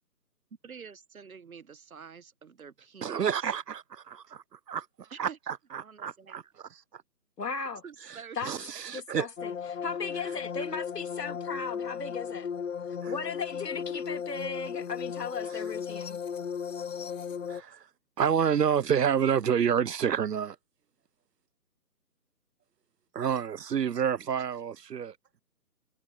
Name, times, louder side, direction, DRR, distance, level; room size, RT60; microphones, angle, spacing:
voice 1, 0.6-3.5 5.1-5.4 5.8-6.5 7.8-9.2, right 6 dB, 55° right, 1.3 m, -48 dB
voice 2, 3.0-6.4 8.5-9.3 13.0-13.1 17.5-17.8 18.2-20.6 23.1-25.1, right 8 dB, 75° right, 0.8 m, -29 dB
voice 3, 7.4-7.8 8.3-8.5 8.9-12.5 13.1-16.2, left 5 dB, 70° left, 2.7 m, -36 dB
sound 1, 9.4-17.6, left 7 dB, 50° left, 0.7 m, -36 dB
figure-of-eight pair, 165°, 50 cm